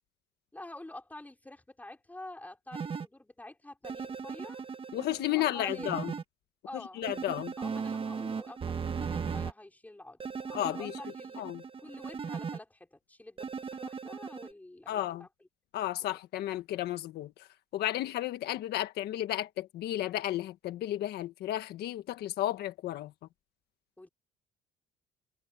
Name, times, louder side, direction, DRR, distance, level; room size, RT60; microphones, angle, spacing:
voice 1, 0.5-4.6 5.3-5.9 6.6-7.1 7.6-11.4 11.8-15.3 24.0-24.1, left 1 dB, 10° left, 5.1 m, -48 dB
sound 1, 2.7-3.1 3.8-6.2 7.0-9.5 10.2-12.6 13.4-14.5, right 6 dB, 35° right, 1.6 m, -37 dB
voice 2, 4.9-6.1 6.7-7.5 10.5-11.0 11.4-11.6 14.9-15.2 15.7-17.5 17.7-23.1, left 13 dB, 75° left, 1.4 m, -33 dB
cardioid pair, 110°, 17 cm